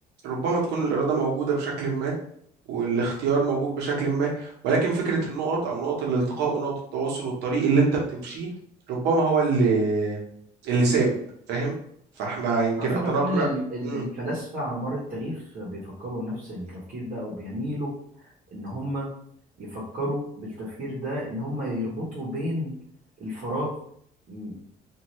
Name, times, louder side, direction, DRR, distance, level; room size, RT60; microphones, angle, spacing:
voice 1, 0.2-2.1 2.7-8.5 8.9-10.2 10.6-11.2 11.5-11.7 12.2-13.5 13.8-14.0, right 4 dB, 85° right, -2 dB, 1.0 m, -24 dB
voice 2, 12.8-17.9 18.2-19.1 19.6-22.7 23.2-23.8 24.3-24.5, equal, 50° right, -6 dB, 1.0 m, -31 dB
2.6 x 2.5 x 3.1 m, 0.67 s
cardioid pair, 110°, 17 cm